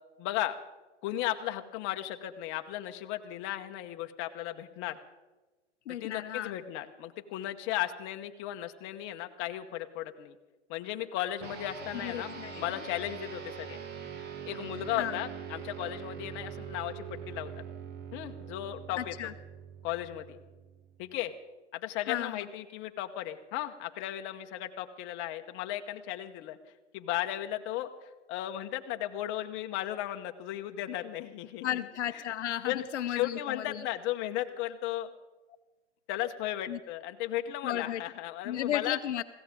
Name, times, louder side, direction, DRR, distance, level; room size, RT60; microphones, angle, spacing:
voice 1, 0.2-0.6 1.0-5.0 6.0-10.3 10.7-13.8 14.5-17.5 18.1-19.3 19.8-20.4 21.0-21.3 21.7-26.6 26.9-31.8 32.1-32.2 32.7-35.1 36.1-39.0, left 13 dB, 35° left, 6 dB, 1.0 m, -35 dB
voice 2, 5.9-6.6 11.9-12.9 15.0-15.1 19.0-19.3 22.1-22.5 31.6-33.8 36.7-36.8 37.6-38.0 38.4-39.2, left 11 dB, 75° left, 11 dB, 0.8 m, -34 dB
sound 1, 11.4-21.1, right 7 dB, 30° right, 1.4 m, -43 dB
21.0 x 16.0 x 3.7 m, 1.2 s
hypercardioid pair, 125°, 35 cm